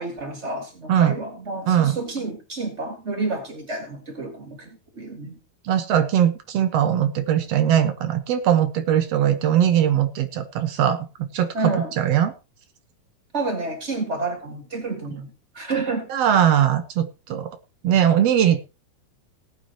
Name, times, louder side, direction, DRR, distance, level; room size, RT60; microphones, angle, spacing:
voice 1, 0.0-5.4 11.5-11.9 13.3-16.1, right 3 dB, 60° right, 4 dB, 0.7 m, -29 dB
voice 2, 1.7-2.0 5.6-12.3 16.1-17.6 17.8-18.6, right 10 dB, 80° right, 8 dB, 1.4 m, -20 dB
19.0 x 9.9 x 2.9 m, 0.29 s
omnidirectional pair, 4.7 m